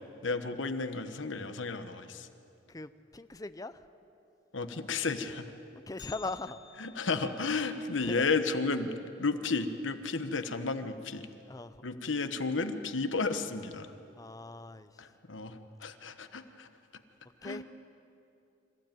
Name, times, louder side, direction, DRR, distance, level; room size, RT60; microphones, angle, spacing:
voice 1, 0.2-2.3 4.5-5.5 6.8-8.9 9.2-11.3 11.8-13.9 15.0-16.7 17.4-17.6, left 4 dB, 80° left, 9 dB, 1.2 m, -33 dB
voice 2, 2.7-3.9 5.9-6.6 8.0-8.3 11.5-11.9 14.2-15.1 17.4-17.6, left 2 dB, 20° left, 12 dB, 0.6 m, -40 dB
Bell, 6.0-10.1 10.3-10.4 10.9-11.0 11.8-11.9 12.7-13.0 13.3-13.4, left 10 dB, 60° left, 1.6 m, -56 dB
26.5 x 15.0 x 9.1 m, 2.8 s
head